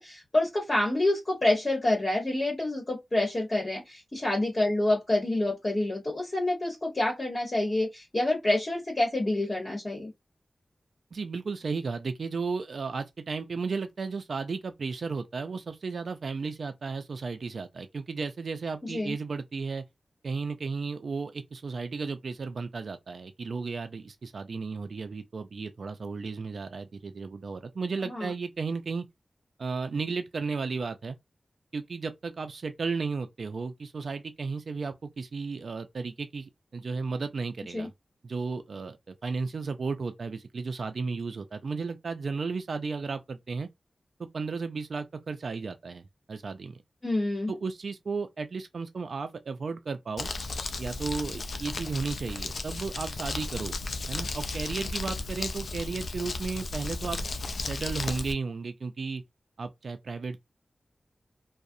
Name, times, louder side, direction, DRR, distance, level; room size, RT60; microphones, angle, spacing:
voice 1, 0.0-10.1 18.9-19.1 28.1-28.3 37.7-37.9 47.0-47.5, left 1 dB, 45° left, 1.0 m, -27 dB
voice 2, 11.1-19.8 20.2-29.1 29.6-31.2 31.7-37.9 38.2-43.7 44.2-46.8 47.5-50.3 50.8-53.8 54.1-57.3 57.6-59.2 59.6-60.4, right 4 dB, 75° right, 0.3 m, -34 dB
Crumpling crinkling, 50.2-58.3, left 3 dB, 75° left, 0.3 m, -34 dB
2.4 x 2.0 x 2.6 m
cardioid pair, 50°, 0 cm